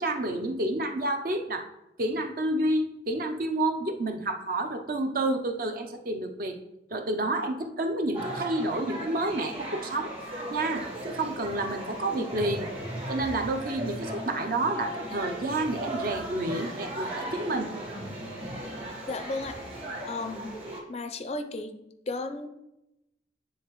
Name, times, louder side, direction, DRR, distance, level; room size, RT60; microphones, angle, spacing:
voice 1, 0.0-1.7 2.0-6.6 6.9-10.1 10.5-12.7 13.1-17.7, right 2 dB, 50° right, 5 dB, 0.6 m, -29 dB
sound 1, 8.1-20.8, right 1 dB, 30° right, 1.4 m, -37 dB
voice 2, 19.1-19.6 20.1-20.5 20.9-21.7 22.1-22.5, left 2 dB, 35° left, 8 dB, 0.4 m, -34 dB
9.4 x 3.6 x 3.0 m, 0.89 s
head